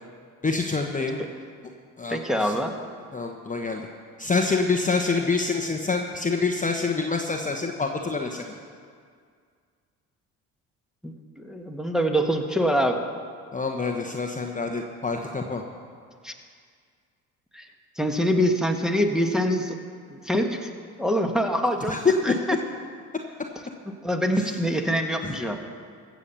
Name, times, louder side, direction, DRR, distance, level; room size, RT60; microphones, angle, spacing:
voice 1, 0.4-1.3 2.0-2.6 3.1-3.9 4.2-8.4 13.5-15.6 21.9-22.3 24.4-24.6 25.2-25.3, left 4 dB, 20° left, 2 dB, 1.1 m, -26 dB
voice 2, 2.1-2.7 11.0-13.0 16.2-16.3 17.5-17.6 18.0-19.8 20.1-20.7 21.0-22.6 23.9-25.6, equal, ahead, 2 dB, 1.5 m, -25 dB
15.5 x 7.3 x 6.9 m, 2.1 s
hypercardioid pair, 60°, 41 cm